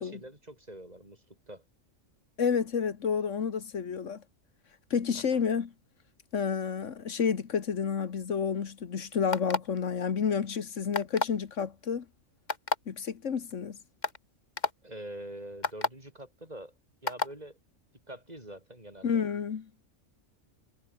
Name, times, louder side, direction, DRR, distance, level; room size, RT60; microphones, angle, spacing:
voice 1, 0.0-1.6 5.1-5.4 14.8-16.7 17.0-17.6 18.1-19.2, right 1 dB, 35° right, 6.1 m, -45 dB
voice 2, 2.4-4.2 4.9-5.7 6.3-12.1 12.9-13.8 19.0-19.7, left 6 dB, 80° left, 1.7 m, -30 dB
sound 1, 9.3-9.8 10.9-11.4 12.5-12.8 13.5-13.6 14.0-14.2 14.6-14.7 15.6-15.9 17.1-17.3, left 4 dB, 35° left, 1.6 m, -29 dB
omnidirectional pair, 1.3 m